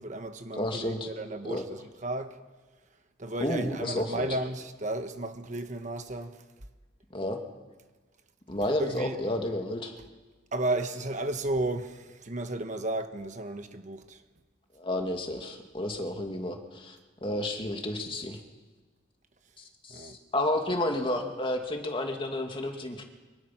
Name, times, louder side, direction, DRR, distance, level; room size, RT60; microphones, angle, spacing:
voice 1, 0.0-2.3 3.2-6.3 8.8-9.2 10.5-11.9 12.3-14.0 19.9-20.1, right 2 dB, 40° right, 1.3 m, -33 dB
voice 2, 0.5-1.1 1.4-1.8 3.4-4.4 7.1-7.4 8.5-10.0 14.8-17.0 17.2-18.4 19.6-23.0, left 1 dB, 30° left, 2.4 m, -31 dB
25.5 x 23.5 x 6.1 m
head